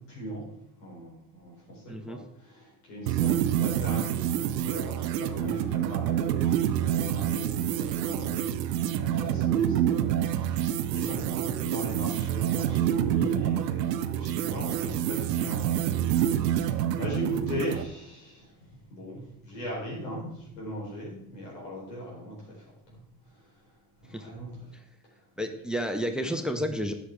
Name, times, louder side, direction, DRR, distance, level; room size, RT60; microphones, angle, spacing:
voice 1, 0.0-24.7 26.2-26.7, equal, 80° left, -4 dB, 4.4 m, -39 dB
voice 2, 1.9-2.2 24.1-24.3 25.4-26.9, equal, ahead, 6 dB, 1.2 m, -31 dB
sound 1, 3.1-17.9, right 10 dB, 85° right, 0.7 m, -27 dB
13.0 x 8.5 x 3.7 m, 0.77 s
hypercardioid pair, 50°, 48 cm